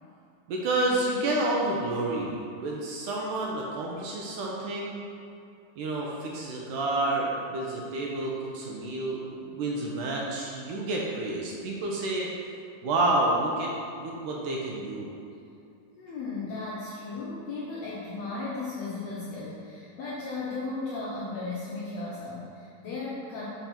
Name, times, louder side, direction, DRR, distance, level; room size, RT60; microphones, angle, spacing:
voice 1, 0.5-5.0 5.8-12.3 12.8-13.7 14.0-15.2, right 2 dB, 75° right, -3 dB, 2.0 m, -29 dB
voice 2, 16.0-23.5, left 3 dB, 85° left, -7 dB, 1.4 m, -35 dB
6.0 x 5.7 x 4.3 m, 2.6 s
omnidirectional pair, 4.2 m